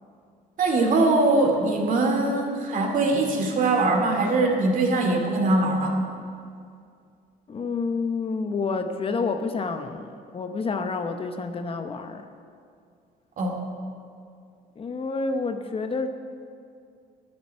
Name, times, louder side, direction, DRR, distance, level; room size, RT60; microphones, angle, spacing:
voice 1, 0.6-6.0 13.4-13.6, right 2 dB, 50° right, 2 dB, 2.5 m, -22 dB
voice 2, 7.5-12.2 14.8-16.1, left 4 dB, 35° left, 7 dB, 0.9 m, -29 dB
11.0 x 9.0 x 9.9 m, 2.3 s
cardioid pair, 110°, 17 cm